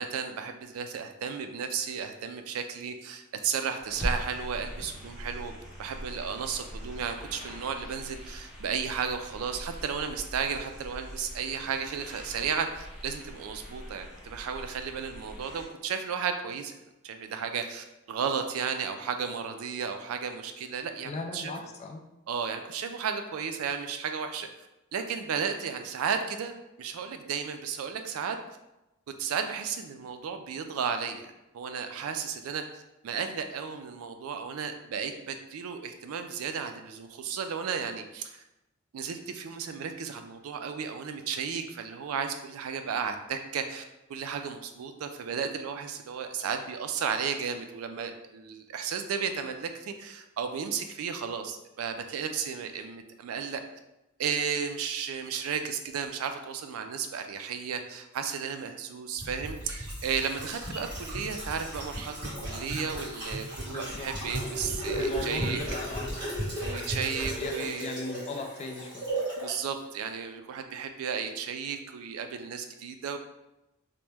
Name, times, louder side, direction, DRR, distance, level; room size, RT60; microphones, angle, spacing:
voice 1, 0.0-5.5 5.8-16.7 17.0-21.5 22.3-24.5 24.9-28.4 29.2-38.4 38.9-43.8 44.1-53.6 54.2-65.6 66.6-67.9 69.4-73.2, right 6 dB, 80° right, 7 dB, 0.3 m, -34 dB
sound 1, 3.8-15.7, equal, ahead, 0.9 m, -41 dB
voice 2, 21.0-22.0 63.7-64.1 64.9-66.2 66.7-67.1 67.4-69.1, left 3 dB, 30° left, 3 dB, 0.3 m, -38 dB
sound 2, 59.2-69.5 69.8-69.9, right 1 dB, 20° right, 1.4 m, -35 dB
2.9 x 2.1 x 3.3 m, 0.94 s
head